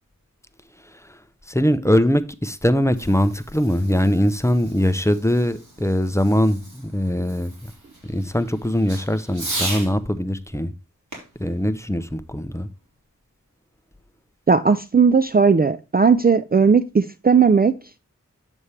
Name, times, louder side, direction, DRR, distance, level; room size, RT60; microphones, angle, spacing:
voice 1, 0.8-1.2 1.5-7.5 8.0-10.7 11.4-12.7, equal, 10° left, 0.7 m, -21 dB
Fireworks, 2.8-9.9 11.1-12.7, right 2 dB, 65° right, 3.5 m, -37 dB
voice 2, 14.5-17.8, right 5 dB, 30° right, 0.4 m, -16 dB
8.2 x 7.1 x 3.2 m
wide cardioid pair, 45°, 32 cm